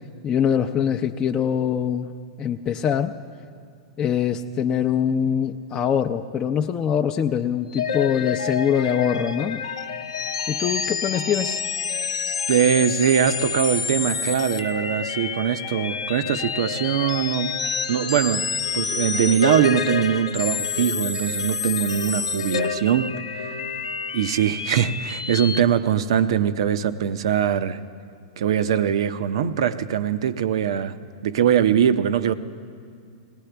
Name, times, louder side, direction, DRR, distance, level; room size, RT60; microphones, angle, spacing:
voice 1, 0.0-2.1 2.4-3.1 4.0-9.7 10.5-11.6, left 8 dB, 30° left, 4 dB, 0.5 m, -23 dB
sound 1, 7.7-25.6, left 6 dB, 90° left, 0.7 m, -28 dB
voice 2, 12.5-17.6 17.9-18.5 18.7-23.5 24.1-27.8 28.4-30.9 31.2-32.4, right 9 dB, 70° right, 12 dB, 0.6 m, -22 dB
21.0 x 17.5 x 3.4 m, 2.3 s
hypercardioid pair, 110°, 3 cm